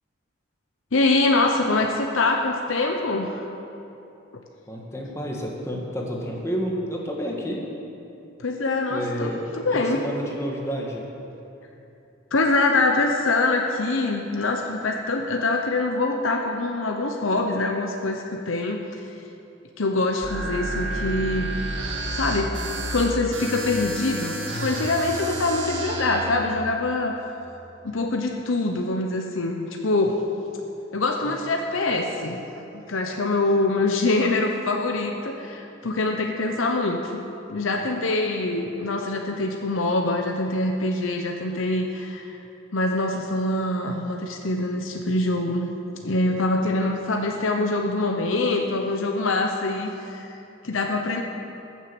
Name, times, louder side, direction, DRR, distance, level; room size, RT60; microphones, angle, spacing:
voice 1, 0.9-3.5 8.4-10.0 12.3-19.0 19.8-21.7 22.1-22.5 22.9-27.2 27.8-30.2 30.9-32.4 32.7-37.2 37.5-42.4 42.7-45.7 46.0-50.4 50.6-51.2, left 2 dB, 80° left, 2 dB, 0.9 m, -24 dB
voice 2, 4.7-7.6 8.9-11.0, equal, 15° left, -1 dB, 1.6 m, -30 dB
sound 1, 20.2-26.4, right 1 dB, 65° right, 1.8 m, -30 dB
14.5 x 7.4 x 7.0 m, 2.8 s
head